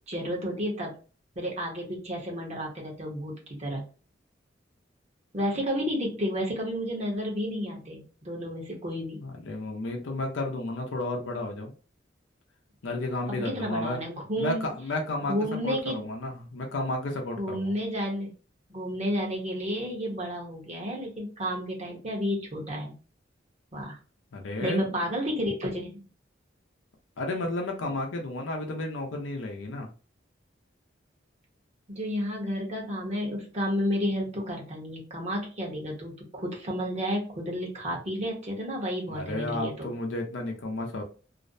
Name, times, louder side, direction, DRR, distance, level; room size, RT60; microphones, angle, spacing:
voice 1, 0.1-1.0 1.4-3.8 5.3-9.2 13.4-14.7 15.3-16.1 17.4-18.3 18.7-23.0 23.7-24.0 24.6-26.0 31.9-39.9, equal, 35° right, -1 dB, 0.8 m, -31 dB
voice 2, 9.2-11.7 12.8-14.0 14.4-17.7 24.3-24.8 27.2-29.9 39.1-41.0, left 2 dB, 90° left, 2 dB, 0.5 m, -32 dB
2.5 x 2.0 x 2.5 m, 0.36 s
head